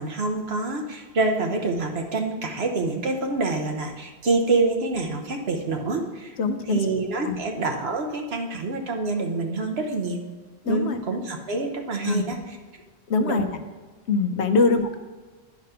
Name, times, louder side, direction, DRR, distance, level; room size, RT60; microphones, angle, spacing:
voice 1, 0.0-6.4 6.7-10.2 10.7-12.6 13.2-13.3 14.6-14.7, right 3 dB, 70° right, 3 dB, 1.3 m, -26 dB
voice 2, 6.4-6.8 7.2-7.4 10.6-11.0 12.0-12.3 13.1-13.5 14.1-15.0, left 3 dB, 80° left, 7 dB, 1.1 m, -22 dB
10.0 x 5.1 x 5.7 m, 1.4 s
omnidirectional pair, 1.1 m